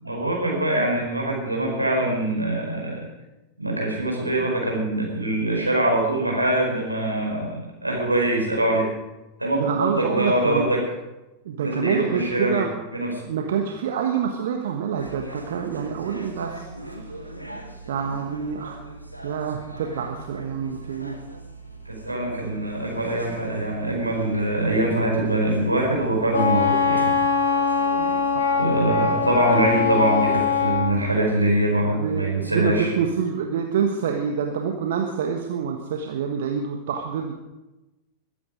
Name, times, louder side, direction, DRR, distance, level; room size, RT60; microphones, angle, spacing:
voice 1, 0.0-3.1 3.6-8.9 9.4-10.8 11.6-12.6 12.9-13.1 21.8-27.1 28.6-32.9, right 1 dB, 85° right, -1 dB, 4.7 m, -23 dB
voice 2, 9.6-10.7 11.4-12.7 13.3-17.3 17.9-18.8 19.2-21.2 28.0-28.7 31.8-37.3, right 7 dB, 60° right, 3 dB, 1.3 m, -27 dB
sound 1, 15.0-30.7, right 2 dB, 90° left, 2.0 m, -40 dB
Wind instrument woodwind instrument, 26.3-30.9, left 6 dB, 65° left, 2.6 m, -22 dB
21.5 x 9.4 x 5.1 m, 1.0 s
figure-of-eight pair, 90°, 0 cm